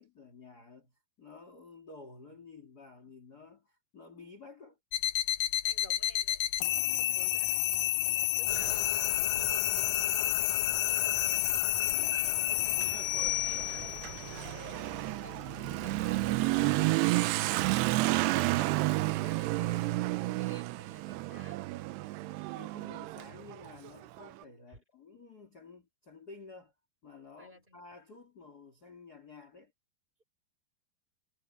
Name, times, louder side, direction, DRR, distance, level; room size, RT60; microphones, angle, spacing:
voice 1, 0.0-4.8 6.7-7.2 8.0-8.4 11.8-12.3 16.7-17.2 22.5-26.7 27.0-29.7, left 4 dB, 25° left, 2.7 m, -52 dB
sound 1, 4.9-16.9, left 15 dB, 75° left, 1.9 m, -31 dB
voice 2, 5.6-6.4 6.7-7.6 8.4-11.6 13.0-16.5 17.7-21.7 24.7-24.8 27.4-27.8, equal, 10° right, 6.4 m, -55 dB
sound 2, 8.5-14.5, left 8 dB, 55° left, 2.0 m, -41 dB
Motorcycle / Accelerating revving vroom, 12.0-24.3, right 19 dB, 90° right, 2.8 m, -31 dB
omnidirectional pair, 4.6 m